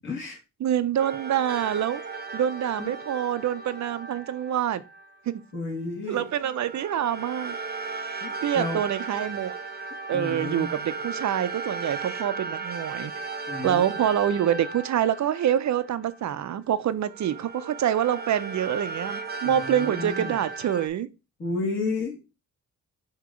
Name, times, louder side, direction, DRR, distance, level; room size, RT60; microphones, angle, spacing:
voice 1, 0.0-0.4 2.8-2.9 5.5-6.2 8.2-8.8 10.1-10.7 13.5-13.9 19.4-20.4 21.4-22.2, left 3 dB, 35° left, 2.3 m, -32 dB
voice 2, 0.6-2.0 2.3-4.8 5.3-5.4 6.1-7.6 8.4-9.5 10.1-13.1 13.6-21.1, right 10 dB, 55° right, 0.6 m, -26 dB
sound 1, 1.0-5.2 6.1-16.5 17.0-20.9, right 4 dB, 30° right, 0.9 m, -36 dB
6.6 x 2.9 x 5.0 m
cardioid pair, 130°, 34 cm